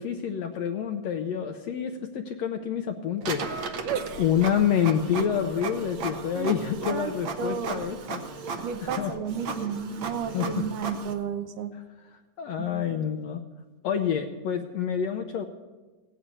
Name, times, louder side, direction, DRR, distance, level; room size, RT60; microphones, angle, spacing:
voice 1, 0.0-3.4 4.2-8.2 8.8-9.1 10.3-10.7 12.4-13.4 13.8-15.5, left 8 dB, 75° left, 5 dB, 1.6 m, -27 dB
Printer, 3.2-11.1, right 4 dB, 65° right, 1.2 m, -36 dB
voice 2, 3.8-4.2 6.3-6.5 6.9-7.8 8.6-11.7 12.6-12.9, right 7 dB, 80° right, 8 dB, 2.5 m, -32 dB
17.0 x 8.9 x 8.3 m, 1.3 s
omnidirectional pair, 3.7 m